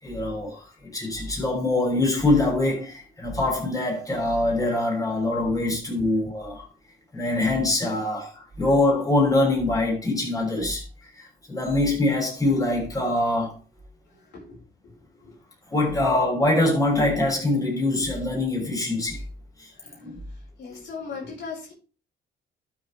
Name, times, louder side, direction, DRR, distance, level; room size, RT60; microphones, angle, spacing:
voice 1, 0.0-6.7 7.1-10.8 11.2-13.5 15.7-19.2 19.6-19.7 20.0-20.2 20.7-20.8, left 2 dB, 15° left, 6.3 m, -24 dB
voice 2, 14.3-14.9 15.2-15.4 19.8-19.9 20.6-21.7, left 5 dB, 65° left, 5.3 m, -38 dB
12.5 x 7.3 x 3.4 m
cardioid pair, 90°, 20 cm